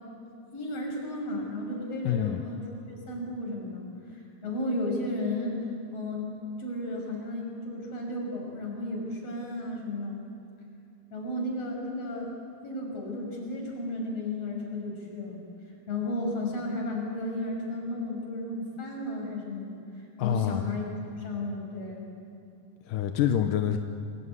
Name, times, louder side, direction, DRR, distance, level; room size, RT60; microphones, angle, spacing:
voice 1, 0.5-3.9 4.1-5.6 5.9-10.2 11.1-12.3 12.6-15.4 15.9-19.7 20.2-20.9 21.2-22.1, left 1 dB, 50° left, 0 dB, 7.1 m, -33 dB
voice 2, 2.0-2.4 20.2-20.7 22.9-23.8, left 10 dB, 90° left, 6 dB, 2.6 m, -26 dB
28.0 x 20.5 x 9.7 m, 2.7 s
omnidirectional pair, 3.8 m